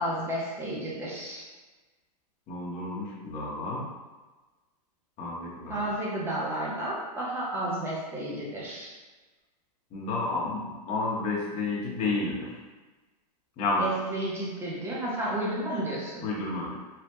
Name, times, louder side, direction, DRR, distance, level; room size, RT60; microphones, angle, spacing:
voice 1, 0.0-1.4 5.7-9.0 13.8-16.3, right 1 dB, 10° right, -5 dB, 0.7 m, -32 dB
voice 2, 2.5-3.9 5.2-5.8 9.9-12.5 13.6-13.8 16.2-16.8, left 3 dB, 35° left, -4 dB, 0.8 m, -31 dB
3.2 x 2.1 x 2.9 m, 1.3 s
hypercardioid pair, 130°, 21 cm